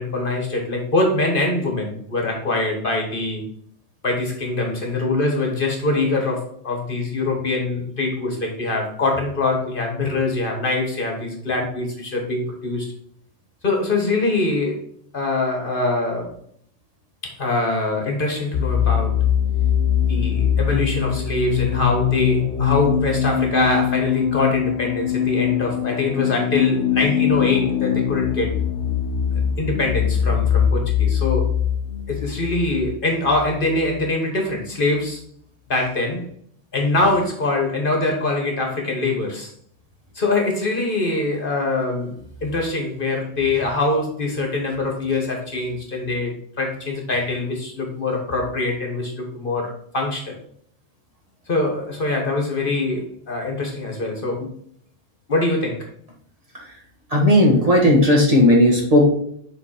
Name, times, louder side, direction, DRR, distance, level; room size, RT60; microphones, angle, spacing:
voice 1, 0.0-3.4 4.0-12.9 13.6-14.8 15.1-16.4 17.2-19.2 20.1-28.5 29.6-31.5 32.1-35.2 35.7-36.3 36.7-39.5 40.1-42.2 42.4-50.4 51.5-54.5 55.3-55.9, left 2 dB, 45° left, 1 dB, 1.5 m, -23 dB
sound 1, 18.5-34.1, left 9 dB, 65° left, 0.9 m, -22 dB
voice 2, 57.1-59.1, left 1 dB, 30° right, -2 dB, 1.7 m, -14 dB
7.2 x 3.9 x 4.4 m, 0.65 s
omnidirectional pair, 1.3 m